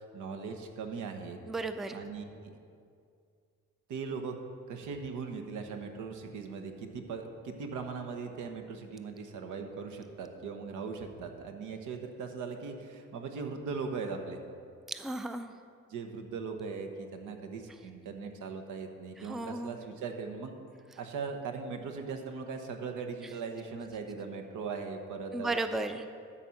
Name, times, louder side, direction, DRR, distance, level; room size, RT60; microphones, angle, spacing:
voice 1, 0.0-1.4 1.9-2.5 3.9-4.3 4.7-14.4 15.9-20.6 21.0-25.5, right 5 dB, 80° right, 5 dB, 1.0 m, -39 dB
voice 2, 1.5-2.0 14.9-15.5 19.3-19.8 25.3-26.1, right 2 dB, ahead, 9 dB, 0.4 m, -34 dB
12.5 x 4.2 x 5.8 m, 2.3 s
cardioid pair, 90°, 30 cm